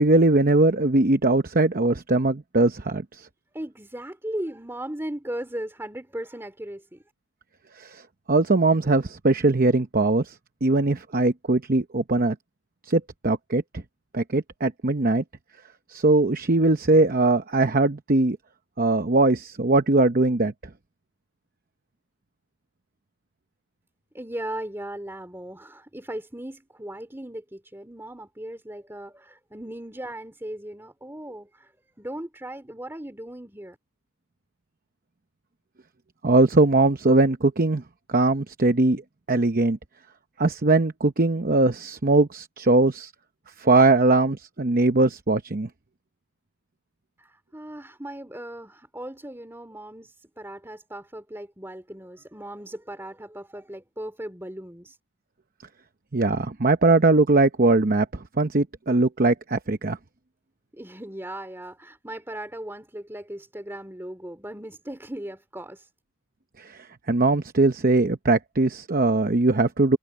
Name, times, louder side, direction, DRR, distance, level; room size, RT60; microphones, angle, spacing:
voice 1, 0.0-3.3 7.8-8.0 8.3-10.3 10.6-12.4 12.9-13.8 14.1-15.2 15.9-18.4 18.8-20.5 36.2-37.8 38.1-39.0 39.3-39.8 40.4-43.1 43.6-45.7 56.1-60.0 66.6-70.0, right 2 dB, 40° right, 0.8 m, -21 dB
voice 2, 3.5-7.0 24.1-31.7 32.0-33.8 47.2-55.0 60.7-65.9, right 1 dB, 10° right, 2.9 m, -37 dB
head